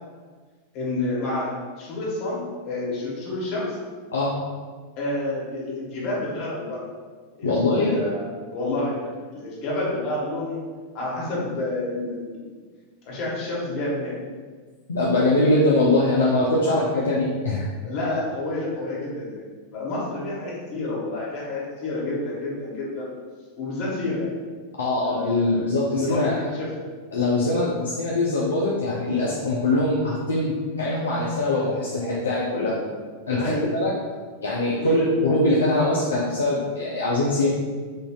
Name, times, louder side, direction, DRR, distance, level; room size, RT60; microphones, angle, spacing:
voice 1, 0.7-3.8 5.0-6.8 7.4-8.2 8.5-10.6 10.9-12.5 13.0-14.2 16.7-16.8 17.8-19.4 19.7-23.1 23.6-24.3 25.0-25.6 25.9-26.6 33.3-33.7 34.8-35.0, left 2 dB, 40° left, -6 dB, 1.3 m, -29 dB
voice 2, 7.4-7.9 14.9-17.6 24.8-26.4 27.1-32.8 33.3-33.9 34.4-37.5, left 2 dB, 70° left, -5 dB, 0.5 m, -22 dB
4.6 x 2.6 x 2.3 m, 1.5 s
figure-of-eight pair, 90°, 0 cm